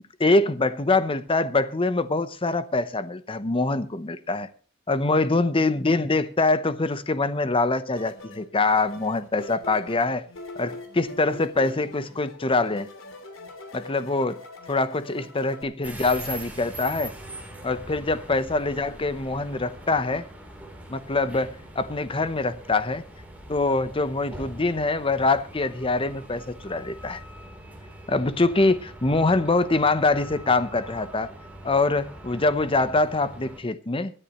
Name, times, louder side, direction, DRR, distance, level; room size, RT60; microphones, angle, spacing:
voice 1, 0.2-4.5 4.9-10.3 10.6-12.9 13.7-14.4 14.7-17.1 17.6-20.3 20.9-23.0 23.5-27.2 28.1-31.3 31.6-34.1, left 3 dB, 25° left, 0.8 m, -24 dB
sound 1, 8.0-15.6, left 2 dB, 85° left, 2.9 m, -43 dB
sound 2, 15.8-33.6, right 1 dB, 10° right, 3.4 m, -42 dB
24.5 x 10.0 x 3.0 m
head